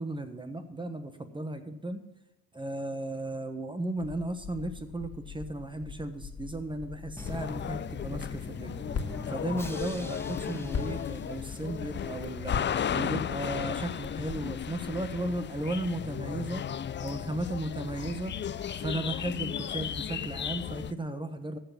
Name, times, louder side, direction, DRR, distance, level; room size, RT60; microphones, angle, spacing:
voice 1, 0.0-2.0 2.5-8.8 9.3-16.7 17.0-18.3 18.8-21.6, right 1 dB, 15° right, 8 dB, 1.3 m, -35 dB
Crackle, 4.0-14.8, left 5 dB, 55° left, 2.2 m, -42 dB
sound 1, 7.2-20.9, left 8 dB, 40° left, 0.5 m, -35 dB
Drum, 7.2-12.0, left 1 dB, 10° left, 1.7 m, -44 dB
14.5 x 6.0 x 8.7 m, 0.97 s
cardioid pair, 90°, 30 cm